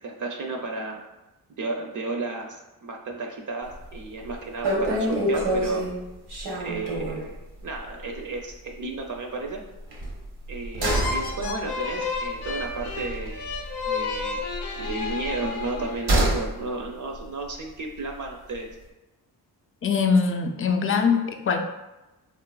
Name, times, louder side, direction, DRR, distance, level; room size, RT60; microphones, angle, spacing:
voice 1, 0.0-1.0 1.6-5.9 6.6-9.6 10.5-13.5 13.9-14.4 14.8-18.7, right 3 dB, 50° right, 2 dB, 0.5 m, -33 dB
sound 1, 3.7-4.0 4.3-4.4 4.6-7.3 7.7-7.9 8.2-8.3 9.9-13.8 14.1-16.5 16.8-16.9, right 1 dB, 80° right, 0.7 m, -27 dB
sound 2, 10.8-16.3, left 4 dB, 85° left, 0.5 m, -32 dB
voice 2, 19.8-21.6, left 5 dB, 35° left, 5 dB, 0.4 m, -22 dB
3.6 x 2.5 x 2.2 m, 1.0 s
cardioid pair, 55°, 39 cm